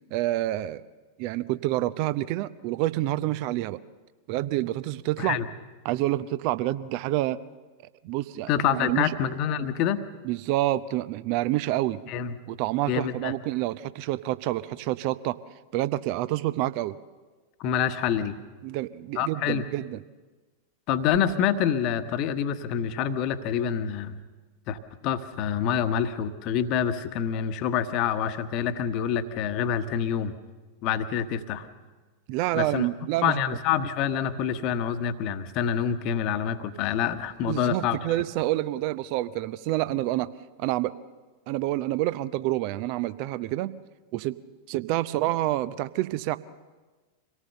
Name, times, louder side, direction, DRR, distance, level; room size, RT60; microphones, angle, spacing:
voice 1, 0.1-0.8 1.2-3.8 4.3-5.4 5.8-7.4 8.0-9.1 10.2-12.0 12.5-15.4 15.7-17.0 18.6-20.0 32.3-33.4 37.4-40.3 40.6-40.9 41.5-43.8 44.1-44.4 44.7-46.4, right 16 dB, 45° right, 16 dB, 0.6 m, -28 dB
voice 2, 8.5-10.0 12.1-12.4 12.9-13.3 17.6-18.4 19.1-19.7 20.9-24.2 24.7-30.4 30.8-31.7 32.5-32.9 33.2-38.0, left 8 dB, 40° left, 10 dB, 1.2 m, -27 dB
25.5 x 18.0 x 6.8 m, 1.3 s
figure-of-eight pair, 90°, 0 cm